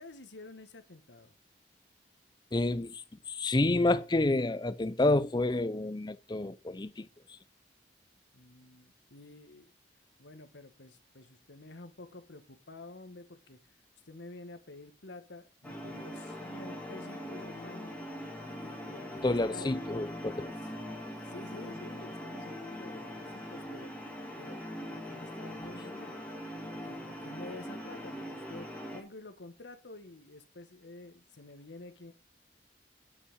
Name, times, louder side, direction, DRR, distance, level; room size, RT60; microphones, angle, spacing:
voice 1, 0.0-1.3 8.3-9.7 10.2-13.6 14.0-17.9 18.4-19.7 20.3-23.9 24.4-24.6 25.0-26.2 26.8-32.1, left 2 dB, 85° left, 1.4 m, -49 dB
voice 2, 2.5-7.1 19.2-20.5, left 2 dB, 25° left, 0.5 m, -29 dB
sound 1, 15.6-29.0, equal, 10° left, 2.1 m, -42 dB
10.0 x 5.6 x 6.3 m
head